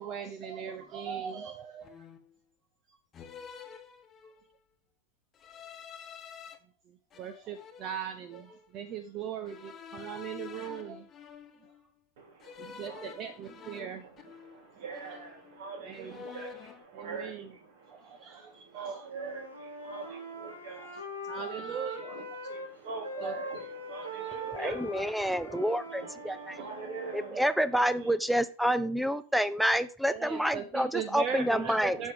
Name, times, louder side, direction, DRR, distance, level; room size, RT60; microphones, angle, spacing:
voice 1, 0.0-2.0 2.9-3.0 6.9-11.1 11.6-11.7 12.6-14.1 15.1-15.2 15.8-16.2 16.9-17.6 17.9-19.1 20.0-20.2 20.9-22.4 23.2-23.6 24.2-24.7 25.4-25.6 25.9-26.7 27.2-27.6 30.1-32.1, right 8 dB, 35° right, 0.8 m, -40 dB
sound 1, 0.7-1.0 1.8-2.4 3.1-4.5 5.3-6.6 7.1-8.7 9.5-11.8 12.4-14.7 14.9-15.6 15.9-16.9, left 7 dB, 25° left, 1.2 m, -48 dB
voice 2, 12.2-13.1 13.7-13.9 14.4-21.3 22.1-28.1 31.8-32.0, right 4 dB, 55° right, 3.3 m, -44 dB
Wind instrument woodwind instrument, 19.1-22.7 23.0-27.3, right 1 dB, 75° right, 2.3 m, -41 dB
voice 3, 24.6-26.6 27.1-32.0, equal, ahead, 0.6 m, -28 dB
9.4 x 6.3 x 3.5 m
figure-of-eight pair, 90°, 0 cm